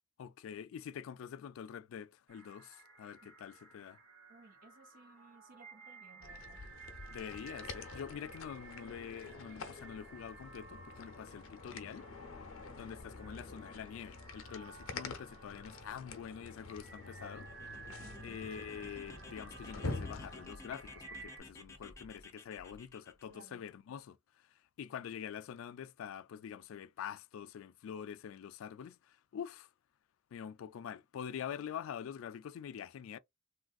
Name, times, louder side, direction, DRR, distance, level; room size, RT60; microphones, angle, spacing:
voice 1, 0.2-4.0 7.1-12.0 12.8-17.5 18.2-24.5 24.8-29.7 30.3-33.2, left 8 dB, 70° left, 0.3 m, -46 dB
sound 1, 2.3-21.4, right 4 dB, 75° right, 1.3 m, -55 dB
voice 2, 4.3-6.7 18.0-18.3 23.3-23.6, right 3 dB, 45° right, 0.4 m, -60 dB
sound 2, 6.2-20.5, left 3 dB, 85° left, 0.7 m, -47 dB
sound 3, 17.3-23.3, left 2 dB, 15° left, 0.5 m, -53 dB
3.4 x 2.4 x 2.3 m
head